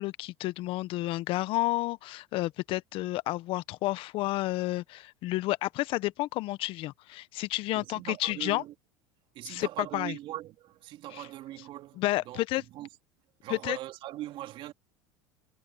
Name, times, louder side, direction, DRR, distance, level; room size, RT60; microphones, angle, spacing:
voice 1, 0.0-8.6 9.4-9.7 9.9-10.1 12.0-12.6 13.5-13.8, left 18 dB, 55° left, 1.2 m, -31 dB
voice 2, 7.7-8.7 9.3-12.9 13.4-14.7, right 14 dB, 55° right, 3.2 m, -41 dB
hypercardioid pair, 85°, 11 cm